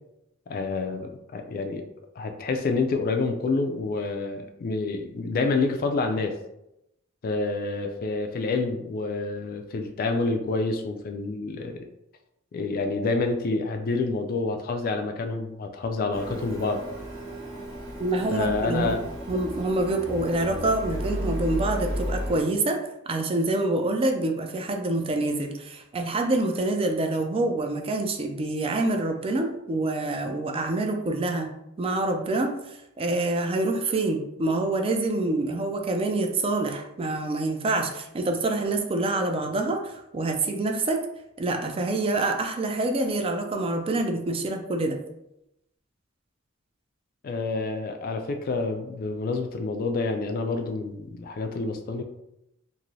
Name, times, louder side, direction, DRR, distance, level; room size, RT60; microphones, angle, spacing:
voice 1, 0.5-1.8 2.2-6.4 7.2-11.8 12.5-16.8 18.3-19.0 47.2-52.0, left 3 dB, 45° left, 5 dB, 0.3 m, -28 dB
Printer, 16.1-22.4, equal, 65° right, 1.2 m, -33 dB
voice 2, 18.0-19.0 19.3-22.8 23.1-31.5 31.8-41.0 41.4-45.0, right 2 dB, 25° right, 4 dB, 0.4 m, -26 dB
2.6 x 2.5 x 3.1 m, 0.84 s
head